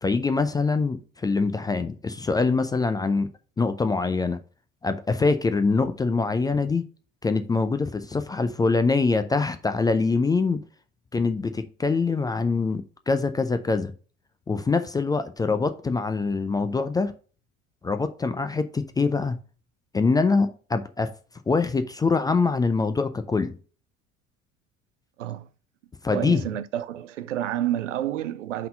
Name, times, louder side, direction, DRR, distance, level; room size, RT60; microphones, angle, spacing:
voice 1, 0.0-3.3 3.6-4.4 4.8-6.8 7.2-10.6 11.1-13.9 14.5-17.1 17.8-19.4 19.9-21.1 21.5-23.6 26.0-26.4, left 4 dB, 10° left, 0.4 m, -24 dB
voice 2, 26.1-28.7, right 12 dB, 70° right, 0.6 m, -29 dB
5.6 x 3.8 x 5.3 m
figure-of-eight pair, 70°, 38 cm